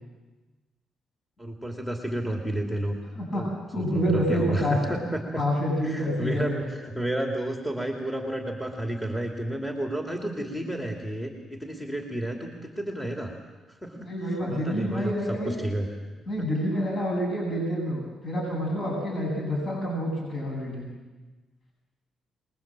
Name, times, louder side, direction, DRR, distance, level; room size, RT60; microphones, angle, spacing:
voice 1, 1.4-3.0 3.3-3.5 3.7-5.4 5.8-13.3 13.7-14.1 14.5-15.9 16.2-16.5, right 1 dB, 5° left, 1 dB, 2.8 m, -31 dB
voice 2, 3.1-3.4 3.7-5.0 5.4-6.7 14.0-15.6 16.3-20.9, equal, 40° left, -2 dB, 8.0 m, -28 dB
26.0 x 21.5 x 7.6 m, 1.2 s
cardioid pair, 90°, 0 cm